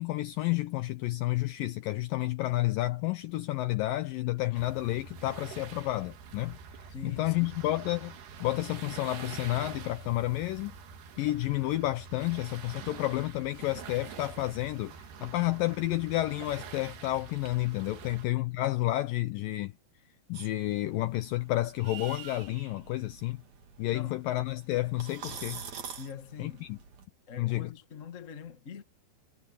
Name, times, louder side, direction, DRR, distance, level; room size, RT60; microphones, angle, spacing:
voice 1, 0.0-10.8 11.2-19.7 20.3-23.4 23.8-25.6 26.4-26.8 27.4-27.7, left 17 dB, 80° left, 2.0 m, -31 dB
sound 1, 4.5-18.3, right 6 dB, 75° right, 4.3 m, -46 dB
voice 2, 6.9-7.7 23.9-24.3 26.0-26.7 27.3-28.8, left 7 dB, 65° left, 0.7 m, -44 dB
sound 2, 20.3-27.1, right 7 dB, 50° right, 3.5 m, -46 dB
omnidirectional pair, 4.7 m